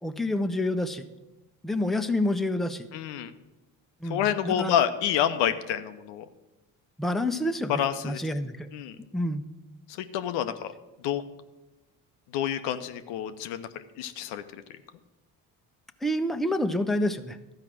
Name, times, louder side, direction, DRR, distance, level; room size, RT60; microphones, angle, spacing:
voice 1, 0.0-1.0 1.6-2.9 4.0-4.7 7.0-8.7 9.1-9.4 16.0-17.4, left 1 dB, ahead, 7 dB, 0.7 m, -28 dB
voice 2, 2.9-3.3 4.0-6.3 7.7-8.2 8.7-9.0 9.9-10.7 11.0-11.2 12.3-14.6, left 10 dB, 80° left, 9 dB, 0.8 m, -28 dB
12.5 x 4.8 x 7.6 m, 1.1 s
hypercardioid pair, 60°, 43 cm